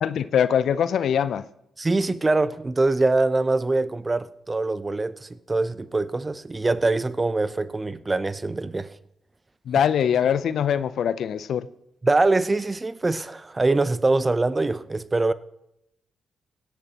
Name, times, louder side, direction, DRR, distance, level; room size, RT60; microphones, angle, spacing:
voice 1, 0.0-1.4 9.7-11.7, left 8 dB, 70° left, 15 dB, 0.6 m, -22 dB
voice 2, 1.8-8.9 12.0-15.3, right 2 dB, 30° right, 15 dB, 0.7 m, -23 dB
17.0 x 11.0 x 3.0 m, 0.80 s
hypercardioid pair, 45°, 0 cm